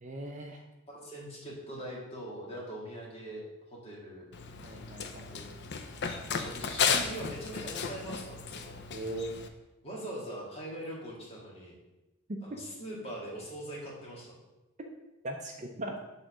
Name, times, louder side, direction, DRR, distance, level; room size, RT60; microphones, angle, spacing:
voice 1, 0.0-0.6 4.6-5.3 8.9-9.3 15.2-15.9, right 1 dB, 30° right, 2 dB, 0.6 m, -39 dB
voice 2, 0.9-4.3 5.3-5.5 6.3-8.8 9.8-11.8 12.4-14.3, right 1 dB, 25° left, -3 dB, 1.7 m, -42 dB
Run, 4.3-9.5, left 6 dB, 50° left, 0.5 m, -34 dB
6.5 x 3.8 x 6.1 m, 1.0 s
head